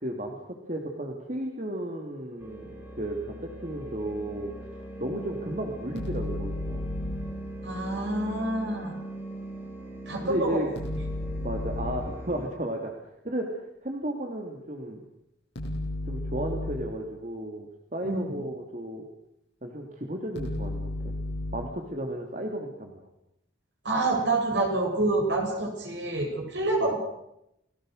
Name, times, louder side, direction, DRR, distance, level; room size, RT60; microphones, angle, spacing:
voice 1, 0.0-4.7 5.0-6.8 10.2-10.7 11.4-12.9 13.2-15.0 16.0-19.1 19.6-21.1 21.5-23.0 26.8-26.9, right 1 dB, 40° right, 2 dB, 2.7 m, -34 dB
sound 1, 2.4-12.5, right 1 dB, 10° right, 6.9 m, -40 dB
sound 2, 6.0-7.4 10.8-12.2 15.6-17.0 20.4-21.8, left 1 dB, 65° left, 7.9 m, -33 dB
voice 2, 7.6-9.0 10.1-10.6 18.0-18.2 23.8-27.0, right 2 dB, 60° right, 2 dB, 7.7 m, -27 dB
29.5 x 19.5 x 6.5 m, 0.82 s
head